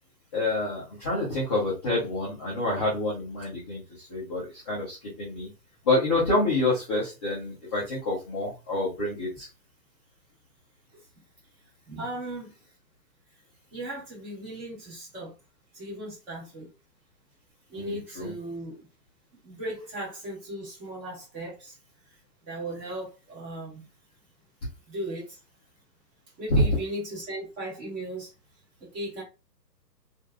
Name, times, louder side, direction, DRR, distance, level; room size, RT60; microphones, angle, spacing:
voice 1, 0.3-5.5 5.8-9.5 17.7-18.3 26.5-26.6, left 2 dB, 15° left, 0.5 m, -27 dB
voice 2, 11.9-12.5 13.7-15.3 15.7-16.7 17.7-18.9 19.4-21.8 22.5-23.9 24.9-25.4 26.4-28.3 28.8-29.2, right 1 dB, 20° right, 1.3 m, -37 dB
2.9 x 2.5 x 2.3 m
hypercardioid pair, 135°, 50 cm